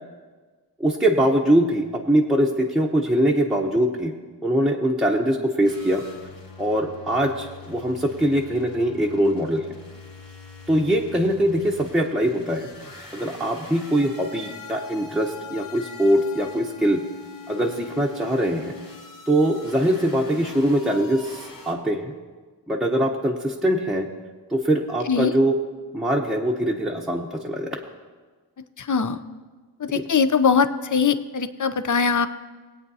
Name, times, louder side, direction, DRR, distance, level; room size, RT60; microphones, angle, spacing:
voice 1, 0.8-4.1 4.4-6.0 6.6-9.6 10.7-12.7 13.1-17.0 17.5-18.7 19.3-22.0 22.7-24.1 24.5-25.5 25.9-27.8 29.9-30.0, right 1 dB, ahead, -1 dB, 0.8 m, -22 dB
sound 1, 5.6-21.7, left 4 dB, 75° left, 2.5 m, -43 dB
voice 2, 28.8-29.2 29.8-32.3, left 5 dB, 45° left, 11 dB, 0.6 m, -21 dB
21.0 x 8.7 x 2.7 m, 1.4 s
wide cardioid pair, 85°, 44 cm